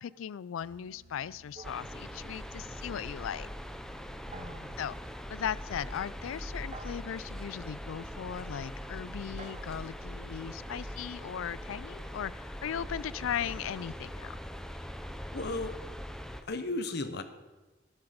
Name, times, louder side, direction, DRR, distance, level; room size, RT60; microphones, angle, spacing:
voice 1, 0.0-3.5 4.8-4.9 5.3-14.4, left 9 dB, 80° left, 21 dB, 0.3 m, -38 dB
sound 1, 0.6-12.0, right 2 dB, 65° right, 2.5 m, -59 dB
sound 2, 1.6-16.4, equal, 5° left, 0.6 m, -42 dB
sound 3, 1.6-2.7 4.3-4.9 6.7-7.4 9.4-11.1, right 3 dB, 35° right, 0.9 m, -52 dB
voice 2, 4.3-4.8 15.3-15.7 16.5-17.2, left 2 dB, 55° left, 10 dB, 0.9 m, -35 dB
12.0 x 12.0 x 5.0 m, 1.2 s
head